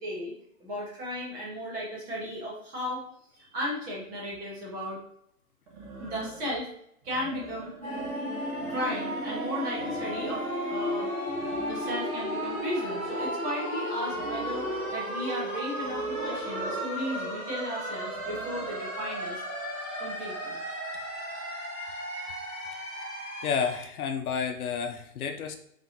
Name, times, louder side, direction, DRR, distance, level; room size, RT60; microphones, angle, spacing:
voice 1, 0.0-3.0 3.3-5.0 6.0-6.7 7.0-7.7 8.7-10.4 10.7-11.1 11.6-19.4 20.0-20.6, equal, 20° right, -4 dB, 1.0 m, -35 dB
sound 1, 4.3-4.4 5.7-6.6 7.0-8.1 8.4-9.4 9.7-10.7 11.3-13.4 14.1-15.0 15.8-16.9 18.1-18.8, right 3 dB, 55° right, 1.5 m, -44 dB
sound 2, 7.8-23.8, equal, 5° left, 0.6 m, -34 dB
voice 2, 23.4-25.6, left 6 dB, 85° left, 5 dB, 0.7 m, -30 dB
3.7 x 3.4 x 2.8 m, 0.71 s
hypercardioid pair, 155°, 43 cm